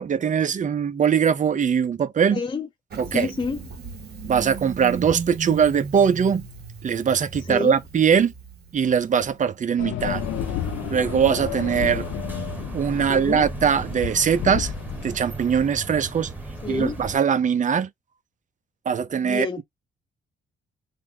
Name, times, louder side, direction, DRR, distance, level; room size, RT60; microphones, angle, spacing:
voice 1, 0.0-2.4 3.0-3.3 4.3-6.4 6.8-8.3 8.7-10.2 10.9-12.1 12.7-14.7 15.0-16.3 16.7-17.9 18.9-19.6, right 7 dB, 40° right, 0.7 m, -21 dB
voice 2, 2.3-2.7 3.1-3.6 7.5-7.8 13.1-13.5 16.6-17.0 19.2-19.6, left 4 dB, 25° left, 0.6 m, -28 dB
Engine starting, 2.9-9.4, right 6 dB, 55° right, 1.5 m, -36 dB
sound 1, 9.8-15.2, left 14 dB, 85° left, 0.4 m, -32 dB
sound 2, 10.0-17.2, right 2 dB, 10° right, 1.2 m, -35 dB
3.4 x 2.2 x 3.8 m
cardioid pair, 90°, 20 cm